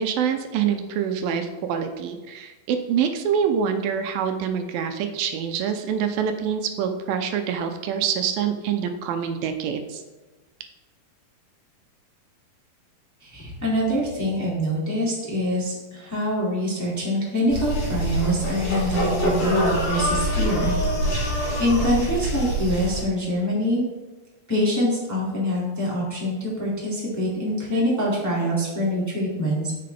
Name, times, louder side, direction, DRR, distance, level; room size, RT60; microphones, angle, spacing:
voice 1, 0.0-10.0, right 7 dB, 90° right, 6 dB, 2.5 m, -25 dB
voice 2, 13.2-20.7 21.0-23.8 24.5-29.7, equal, 5° left, -6 dB, 1.6 m, -25 dB
sound 1, 17.5-23.0, equal, 30° left, 3.5 m, -25 dB
10.5 x 6.7 x 3.4 m, 1.2 s
omnidirectional pair, 4.2 m